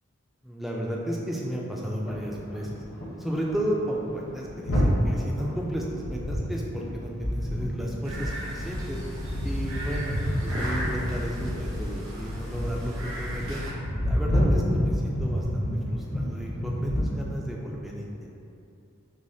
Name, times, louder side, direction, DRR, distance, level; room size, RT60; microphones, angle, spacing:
voice 1, 0.4-2.7 3.2-9.0 9.4-13.6 14.0-18.4, equal, ahead, -3 dB, 0.3 m, -33 dB
sound 1, 2.1-3.2 3.5-3.7 4.0-17.1, equal, 75° left, 0.9 m, -29 dB
sound 2, 8.0-13.7, equal, 80° right, 1.0 m, -36 dB
6.2 x 2.1 x 2.7 m, 2.6 s
head